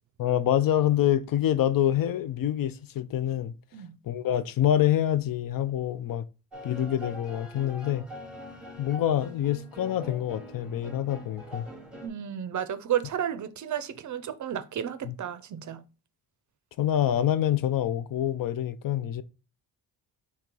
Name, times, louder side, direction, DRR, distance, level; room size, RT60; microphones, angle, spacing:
voice 1, 0.2-3.5 4.1-6.2 6.6-8.1 8.8-11.6 15.1-15.2 16.8-19.2, left 11 dB, 55° left, 0.5 m, -26 dB
sound 1, 6.5-12.1, equal, ahead, 1.0 m, -43 dB
voice 2, 12.0-15.8, right 9 dB, 45° right, 0.5 m, -32 dB
3.8 x 2.8 x 4.5 m
cardioid pair, 95°, 40 cm